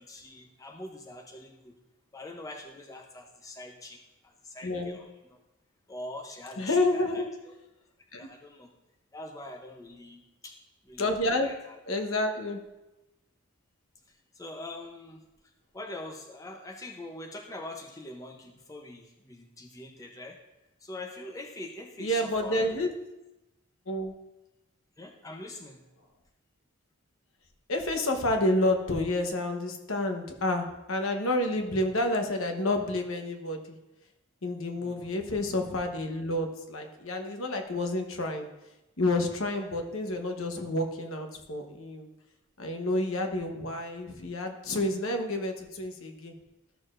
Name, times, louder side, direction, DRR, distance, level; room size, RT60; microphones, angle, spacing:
voice 1, 0.0-1.8 2.1-5.1 5.9-7.5 8.2-8.7 9.1-10.6 10.8-11.8 14.3-15.2 15.7-20.4 20.8-22.9 25.0-25.8 34.8-35.1, left 1 dB, 15° left, 2 dB, 0.7 m, -43 dB
voice 2, 4.6-5.0 6.6-7.3 8.1-8.3 11.0-11.5 11.8-12.6 22.0-22.9 23.9-24.1 27.7-33.8 34.4-38.5 39.0-42.1 42.6-46.4, left 1 dB, 70° left, 4 dB, 1.1 m, -29 dB
13.5 x 6.5 x 2.5 m, 0.96 s
head